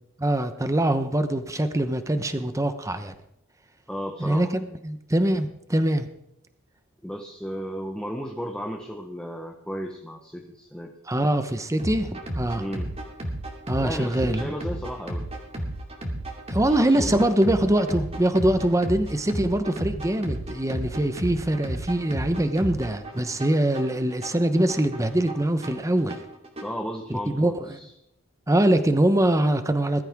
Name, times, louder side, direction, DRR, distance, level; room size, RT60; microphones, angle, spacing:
voice 1, 0.2-3.1 4.2-6.1 11.1-12.6 13.7-14.5 16.5-26.2 27.1-27.8 28.5-30.0, right 1 dB, 15° right, 9 dB, 1.0 m, -23 dB
voice 2, 3.9-4.5 7.0-10.9 12.5-12.9 13.8-15.3 16.7-17.2 26.6-27.9, equal, 5° left, 1 dB, 1.2 m, -34 dB
sound 1, 11.8-26.8, right 1 dB, 30° right, 2.6 m, -34 dB
20.5 x 13.5 x 3.7 m, 0.78 s
head